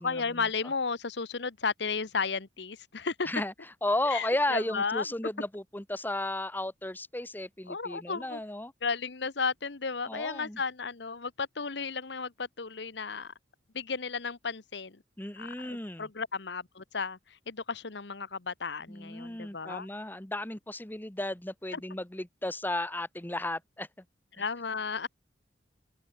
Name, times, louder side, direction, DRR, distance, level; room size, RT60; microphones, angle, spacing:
voice 1, 0.0-3.3 4.0-5.1 7.7-8.4 8.8-13.3 13.7-15.0 15.4-19.9 21.7-21.8 24.4-25.1, left 5 dB, 65° left, 1.1 m, -34 dB
voice 2, 3.8-8.7 10.1-10.6 15.2-16.1 18.9-23.9, left 1 dB, 10° left, 1.3 m, -34 dB
open air
head